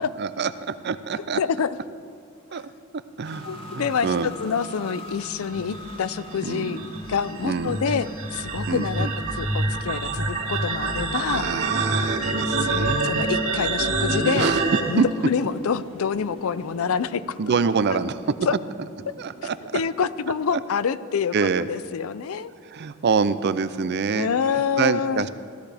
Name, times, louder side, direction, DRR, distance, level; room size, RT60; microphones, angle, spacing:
voice 1, 0.2-1.4 2.5-2.6 3.2-4.3 6.4-6.8 7.4-7.8 8.7-9.1 11.3-13.3 14.3-14.6 15.0-15.1 17.4-18.2 19.2-19.8 21.3-21.7 22.6-24.3 24.8-25.3, right 5 dB, 50° right, 14 dB, 0.5 m, -26 dB
voice 2, 1.4-1.8 2.5-2.6 3.5-6.8 7.1-11.5 12.6-12.7 13.0-14.5 14.9-17.5 17.9-18.0 18.5-18.6 19.7-22.5 24.1-25.3, left 6 dB, 80° left, 16 dB, 0.4 m, -27 dB
sound 1, 3.2-21.7, equal, 25° left, 1.8 m, -41 dB
sound 2, 5.5-14.8, right 2 dB, 75° right, 2.2 m, -26 dB
16.0 x 13.5 x 3.4 m, 2.3 s
head